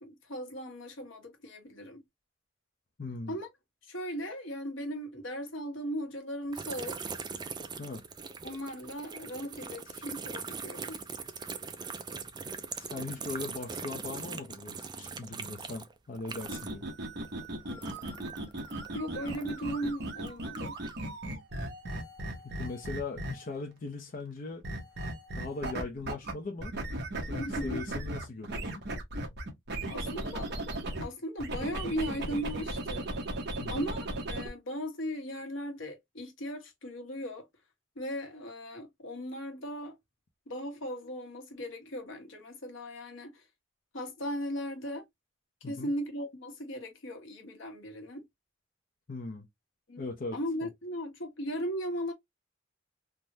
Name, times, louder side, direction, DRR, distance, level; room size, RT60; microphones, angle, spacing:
voice 1, 0.0-2.0 3.3-3.5 3.9-7.0 8.4-11.0 17.7-18.3 18.9-20.7 27.4-27.8 29.9-30.5 31.0-33.1 33.7-37.5 38.0-40.0 40.5-43.3 43.9-45.0 45.7-48.2 49.9-50.1 50.3-52.1, equal, 70° left, 1.0 m, -37 dB
voice 2, 3.0-3.4 7.8-8.0 12.8-16.9 22.4-24.6 25.4-26.8 27.2-28.8 33.6-33.8 45.6-45.9 49.1-49.5 50.0-50.7, left 3 dB, 45° left, 0.6 m, -40 dB
sound 1, 6.5-16.9 17.2-19.7 20.2-21.0, right 5 dB, 20° right, 0.3 m, -41 dB
sound 2, 16.4-23.6 24.6-26.3 26.6-31.0 31.4-34.5, right 1 dB, 55° right, 0.9 m, -37 dB
3.4 x 2.1 x 2.7 m
head